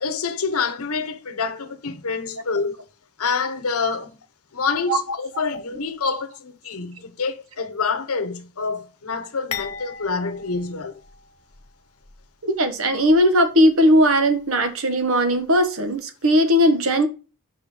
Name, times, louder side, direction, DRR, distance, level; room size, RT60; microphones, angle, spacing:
voice 1, 0.0-2.8 3.2-4.2 4.5-11.0, left 4 dB, 85° left, 1.0 m, -27 dB
sound 1, 9.5-11.7 12.0-12.2 13.1-13.2, left 7 dB, 30° left, 1.1 m, -36 dB
voice 2, 12.4-17.1, equal, 70° right, 1.3 m, -18 dB
5.6 x 5.0 x 5.5 m
head